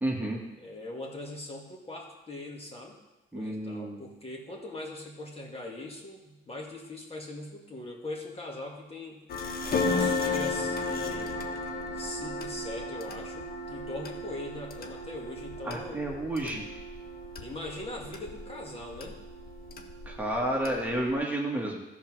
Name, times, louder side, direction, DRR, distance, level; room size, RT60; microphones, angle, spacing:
voice 1, 0.0-0.4 3.3-4.0 15.7-16.6 20.1-21.8, right 1 dB, 10° right, -2 dB, 1.8 m, -31 dB
voice 2, 0.6-3.0 3.3-9.2 9.8-11.4 11.9-16.0 16.4-16.6 17.4-19.2 20.6-20.8, left 2 dB, 30° left, -1 dB, 2.2 m, -41 dB
sound 1, 9.3-21.1, left 3 dB, 50° left, 1.2 m, -34 dB
13.5 x 4.7 x 6.2 m, 1.0 s
cardioid pair, 90°, 20 cm